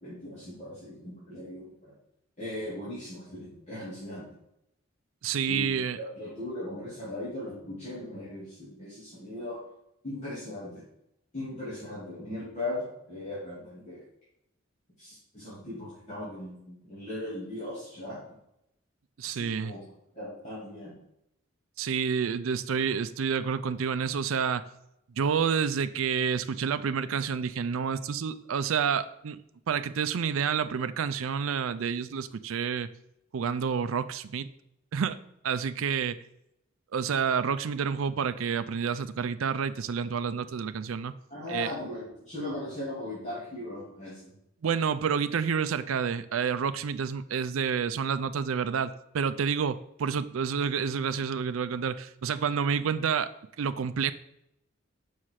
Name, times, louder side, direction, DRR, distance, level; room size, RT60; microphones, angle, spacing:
voice 1, 0.0-1.9 2.4-4.3 5.5-9.6 10.0-10.8 11.3-14.0 15.0-18.2 19.2-19.8 20.1-20.9 41.3-44.3, left 1 dB, 35° left, -10 dB, 2.9 m, -38 dB
voice 2, 5.2-6.0 19.2-19.7 21.8-24.7 25.2-29.4 29.7-32.9 33.3-34.5 34.9-36.2 36.9-41.1 41.5-41.7 44.6-53.3 53.6-54.1, right 6 dB, 80° right, 12 dB, 0.4 m, -29 dB
6.4 x 5.7 x 4.8 m, 0.80 s
head